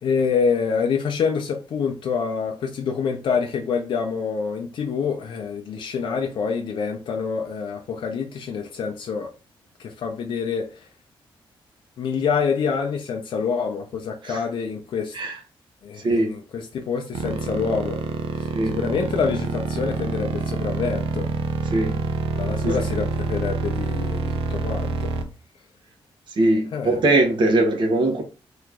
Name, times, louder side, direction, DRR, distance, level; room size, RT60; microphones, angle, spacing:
voice 1, 0.0-9.3 9.8-10.8 12.0-15.2 15.8-18.0 18.4-21.3 22.3-25.1 26.7-27.0, left 6 dB, 65° left, 0.5 m, -26 dB
sound 1, 17.1-25.2, right 4 dB, 80° right, 0.5 m, -27 dB
voice 2, 26.4-28.2, right 2 dB, 55° right, 0.9 m, -20 dB
2.9 x 2.4 x 3.4 m
cardioid pair, 120°, 9 cm